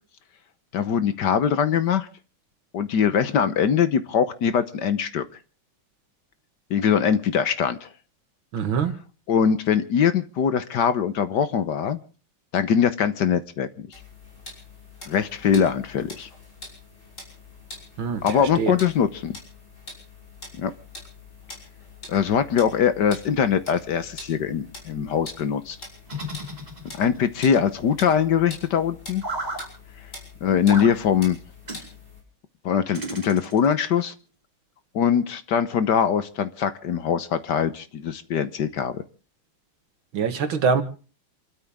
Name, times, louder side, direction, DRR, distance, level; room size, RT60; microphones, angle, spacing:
voice 1, 0.7-2.1 2.7-5.3 6.7-7.9 9.3-12.0 12.5-13.9 15.1-16.3 18.2-19.3 20.6-20.7 22.1-25.8 27.0-29.2 30.4-31.4 32.6-34.1 34.9-39.0, left 7 dB, 60° left, 13 dB, 1.4 m, -22 dB
voice 2, 8.5-9.0 18.0-18.8 40.1-40.8, right 5 dB, 75° right, 8 dB, 2.4 m, -24 dB
sound 1, 13.9-32.2, left 2 dB, 35° left, 6.1 m, -44 dB
sound 2, 26.1-27.3 29.2-29.7 30.7-30.9 31.7-31.9 32.9-33.8, right 1 dB, 20° right, 2.6 m, -33 dB
28.5 x 13.0 x 3.6 m, 0.38 s
omnidirectional pair, 2.2 m